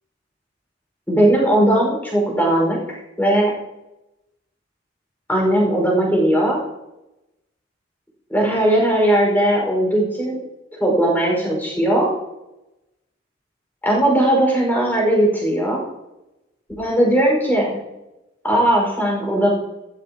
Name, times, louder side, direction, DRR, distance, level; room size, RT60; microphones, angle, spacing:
voice 1, 1.1-2.8 3.2-3.5 5.3-6.6 8.3-10.4 10.8-12.1 13.8-15.8 16.8-17.8 18.4-19.5, right 1 dB, 10° left, -2 dB, 5.4 m, -18 dB
15.0 x 14.0 x 3.0 m, 0.95 s
head